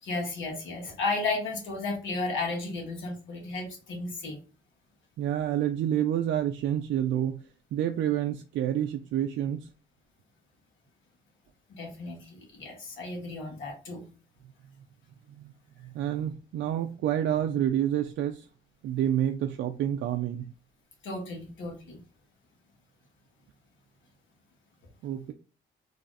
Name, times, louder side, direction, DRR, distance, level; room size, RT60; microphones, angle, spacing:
voice 1, 0.0-4.4 11.7-14.1 21.0-22.0, left 3 dB, 75° left, 1.6 m, -34 dB
voice 2, 5.2-7.4 7.7-9.7 15.4-15.5 15.8-18.5 18.8-20.5 25.0-25.3, right 10 dB, 70° right, 0.4 m, -28 dB
3.3 x 2.4 x 4.0 m
cardioid pair, 90°, 20 cm